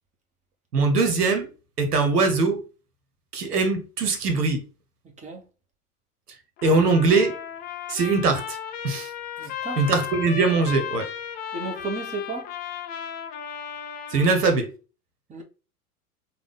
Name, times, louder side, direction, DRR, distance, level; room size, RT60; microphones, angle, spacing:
voice 1, 0.7-1.5 1.8-2.6 3.3-4.6 6.6-7.3 7.9-8.6 8.8-9.1 9.8-11.1 14.1-14.7, right 3 dB, 85° right, 1.0 m, -21 dB
Trumpet, 6.6-14.6, left 8 dB, 20° left, 0.3 m, -35 dB
voice 2, 9.4-9.9 11.5-12.5 15.3-15.4, right 3 dB, 15° right, 0.9 m, -33 dB
3.5 x 2.3 x 3.5 m
hypercardioid pair, 90°, 46 cm